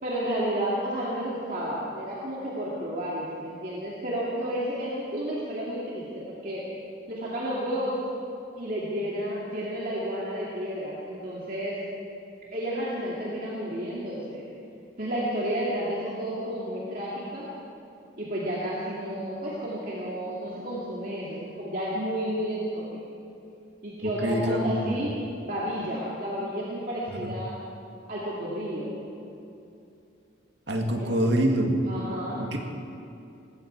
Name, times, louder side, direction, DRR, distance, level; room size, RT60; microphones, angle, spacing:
voice 1, 0.0-6.6 7.1-8.0 8.6-11.8 12.5-14.4 15.0-17.5 18.2-22.8 23.8-25.1 25.5-27.6 28.1-28.9 31.0-31.3 31.8-32.4, equal, 45° right, -6 dB, 2.3 m, -31 dB
voice 2, 24.2-24.9 27.2-27.3 30.7-31.6 32.4-32.6, right 1 dB, 65° right, 2 dB, 2.0 m, -25 dB
20.0 x 15.5 x 4.6 m, 2.7 s
head